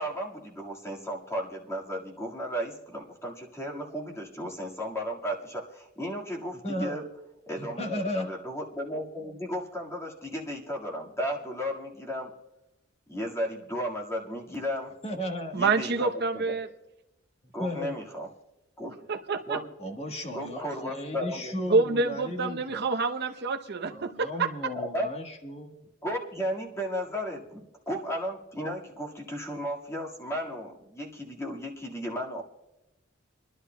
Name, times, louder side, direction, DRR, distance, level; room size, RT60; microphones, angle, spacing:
voice 1, 0.0-7.0 7.5-12.3 13.1-14.9 15.5-16.4 17.5-18.3 18.8-19.0 19.5-19.7 20.3-21.8 24.8-25.1 26.0-32.4, equal, 15° left, -2 dB, 1.8 m, -34 dB
voice 2, 6.6-7.0 7.6-8.3 15.0-15.6 17.6-17.9 19.8-22.9 23.9-25.9, equal, 30° left, 3 dB, 1.4 m, -35 dB
voice 3, 15.5-16.7 19.1-19.6 21.7-24.5, right 4 dB, 55° right, 6 dB, 0.8 m, -27 dB
28.0 x 11.0 x 2.2 m, 0.95 s
head